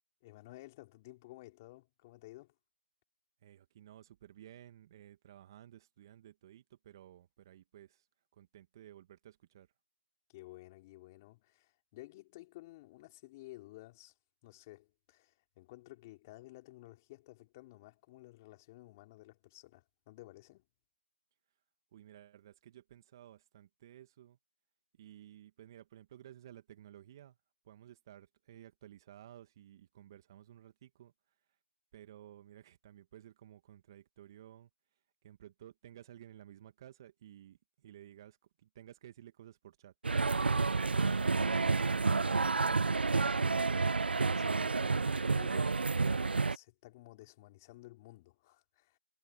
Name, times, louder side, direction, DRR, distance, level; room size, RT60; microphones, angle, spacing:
voice 1, 0.2-2.5 10.3-14.1 14.4-20.6 41.0-41.2 44.3-49.0, left 19 dB, 15° left, 4.1 m, -54 dB
voice 2, 3.4-8.1 8.3-9.7 21.9-24.4 25.0-27.4 27.6-31.1 31.9-34.7 35.2-40.2, right 11 dB, 20° right, 2.0 m, -55 dB
sound 1, 40.0-46.6, right 4 dB, 55° right, 0.8 m, -30 dB
figure-of-eight pair, 165°, 7 cm